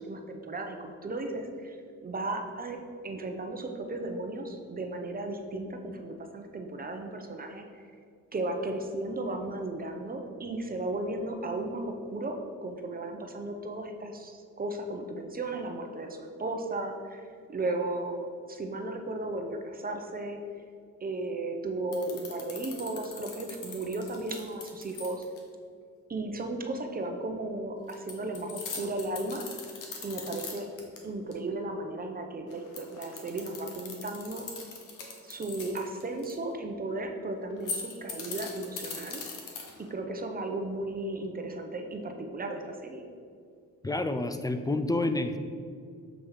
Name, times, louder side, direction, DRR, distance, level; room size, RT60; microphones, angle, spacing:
voice 1, 0.0-7.9 8.3-18.2 18.5-20.4 21.0-25.2 26.1-29.5 30.0-30.7 31.0-34.5 35.2-39.2 39.8-43.0, right 2 dB, 30° right, 4 dB, 0.8 m, -35 dB
sound 1, 21.9-25.4 27.9-31.0 31.3-31.4 32.5-36.3 37.5-39.9, left 5 dB, 75° left, 1.2 m, -40 dB
voice 2, 43.8-45.4, left 2 dB, 10° left, 8 dB, 0.4 m, -29 dB
7.1 x 3.2 x 5.6 m, 2.2 s
cardioid pair, 75°, 31 cm